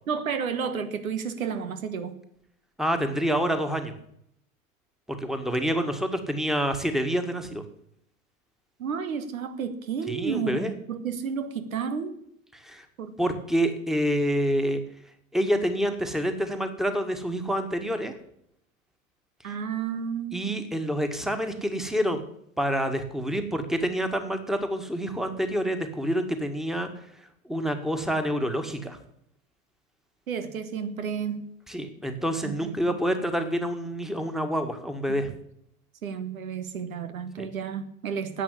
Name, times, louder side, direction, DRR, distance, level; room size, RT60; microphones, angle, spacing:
voice 1, 0.1-2.1 8.8-12.2 13.0-13.2 19.4-20.6 30.3-31.5 32.4-32.7 36.0-38.4, right 6 dB, 75° right, 9 dB, 1.6 m, -31 dB
voice 2, 2.8-3.9 5.1-7.6 10.1-10.7 12.5-12.9 13.2-14.8 15.3-18.1 20.3-22.2 22.6-26.9 27.5-29.0 31.7-35.3 37.4-37.5, equal, ahead, 6 dB, 1.9 m, -27 dB
11.0 x 8.7 x 9.8 m, 0.72 s
figure-of-eight pair, 80°, 42 cm